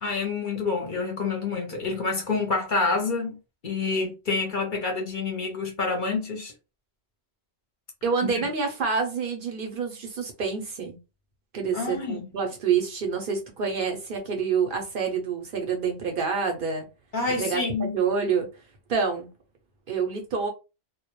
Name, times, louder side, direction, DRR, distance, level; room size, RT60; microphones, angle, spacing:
voice 1, 0.0-3.4 3.6-6.5 8.2-8.5 11.7-12.3 17.1-17.9, left 4 dB, 55° left, 0.7 m, -28 dB
voice 2, 8.0-11.0 11.5-16.8 17.3-18.5 18.9-19.3 19.9-20.5, right 5 dB, 60° right, 0.7 m, -27 dB
2.1 x 2.1 x 2.9 m
omnidirectional pair, 1.2 m